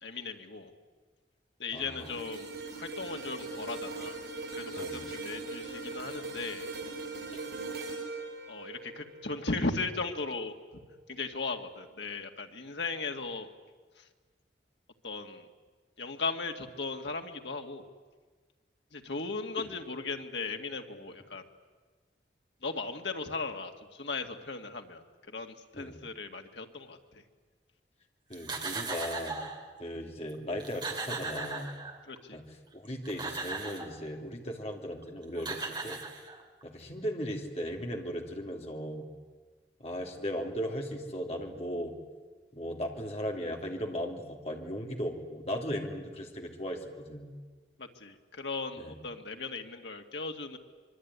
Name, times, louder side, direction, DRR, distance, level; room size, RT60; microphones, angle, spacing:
voice 1, 0.0-0.7 1.6-2.5 2.7-4.2 4.5-6.7 8.5-13.5 14.0-14.1 15.0-15.5 16.0-17.8 18.9-21.4 22.6-27.2 32.1-32.4 47.8-50.6, left 3 dB, 90° left, 4 dB, 2.2 m, -37 dB
voice 2, 1.7-2.1 4.7-5.0 7.3-7.4 19.6-19.7 25.7-26.0 28.3-29.4 29.8-31.7 32.3-32.4 32.7-36.0 36.6-39.1 39.8-41.9 42.5-46.8 47.1-47.3 48.8-48.9, equal, 35° left, 1 dB, 3.1 m, -37 dB
sound 1, 2.0-10.3 10.8-11.0, right 3 dB, 85° right, 7.2 m, -40 dB
sound 2, 28.3-29.6 30.3-30.4 30.6-32.2 32.8-34.0 35.0-35.1 35.4-36.6, right 3 dB, 25° right, 2.6 m, -38 dB
25.5 x 23.5 x 9.7 m, 1.4 s
head